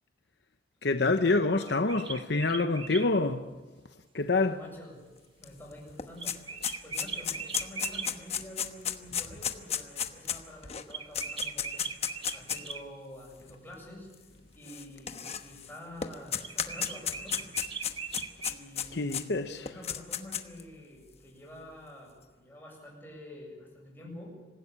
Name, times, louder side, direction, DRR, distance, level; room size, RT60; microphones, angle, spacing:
voice 1, 0.8-3.4 4.1-4.6 18.9-19.7, left 3 dB, 60° left, 0.9 m, -26 dB
sound 1, 1.6-3.1 6.2-8.1 10.9-12.8 16.4-18.6, right 5 dB, 30° right, 1.2 m, -39 dB
voice 2, 4.4-5.0 5.4-11.9 12.3-14.1 14.5-17.6 18.4-24.4, left 1 dB, 10° left, 7.5 m, -48 dB
sound 2, 5.4-5.5 5.8-12.7 13.5-13.6 14.7-15.7 16.0-19.2 19.7-20.6, left 8 dB, 35° left, 1.1 m, -33 dB
25.5 x 15.5 x 8.7 m
head